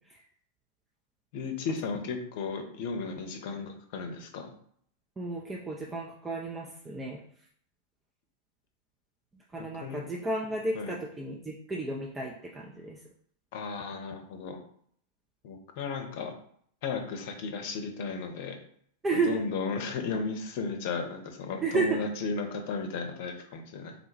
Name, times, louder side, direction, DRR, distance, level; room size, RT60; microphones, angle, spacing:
voice 1, 1.3-4.5 9.6-10.0 10.7-10.9 13.5-14.6 15.4-16.3 16.8-18.6 19.1-23.9, left 4 dB, 50° left, 5 dB, 0.8 m, -35 dB
voice 2, 5.2-7.2 9.5-13.0 19.0-19.4 21.6-22.0, right 3 dB, 15° right, -2 dB, 0.5 m, -32 dB
4.0 x 2.3 x 4.5 m, 0.62 s
figure-of-eight pair, 90°, 0 cm